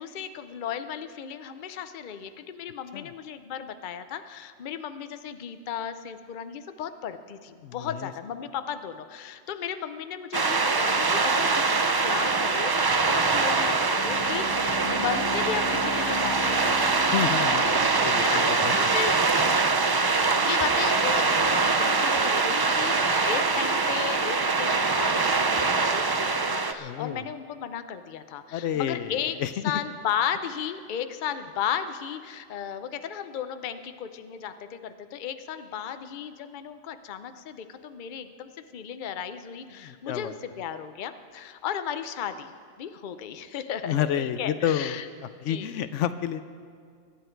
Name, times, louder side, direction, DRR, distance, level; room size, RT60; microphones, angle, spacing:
voice 1, 0.0-12.7 13.0-16.7 17.2-17.8 18.2-19.6 20.3-29.4 29.6-42.5 42.8-45.1 45.5-45.8, left 8 dB, 50° left, 10 dB, 0.7 m, -35 dB
voice 2, 7.6-8.1 17.1-18.7 26.8-27.2 28.5-29.5 39.8-40.4 43.9-45.0 45.4-46.5, left 10 dB, 80° left, 12 dB, 0.9 m, -30 dB
sound 1, 10.3-26.7, right 4 dB, 35° right, 0.3 m, -23 dB
Bowed string instrument, 13.9-18.9, left 5 dB, 30° left, 1.1 m, -38 dB
23.0 x 10.5 x 4.5 m, 2.1 s
omnidirectional pair, 1.2 m